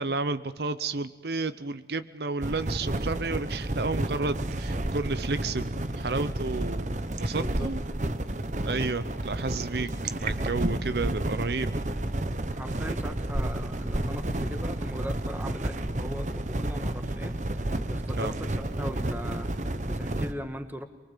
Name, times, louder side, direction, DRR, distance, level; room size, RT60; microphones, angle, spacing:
voice 1, 0.0-5.7 6.0-7.8 8.6-11.7 18.1-18.3, right 3 dB, 65° right, 12 dB, 0.8 m, -31 dB
sound 1, 2.4-20.3, right 1 dB, 45° right, 1.0 m, -31 dB
voice 2, 7.2-7.7 12.3-20.8, equal, 10° right, 8 dB, 1.5 m, -39 dB
24.5 x 23.5 x 7.4 m, 1.2 s
head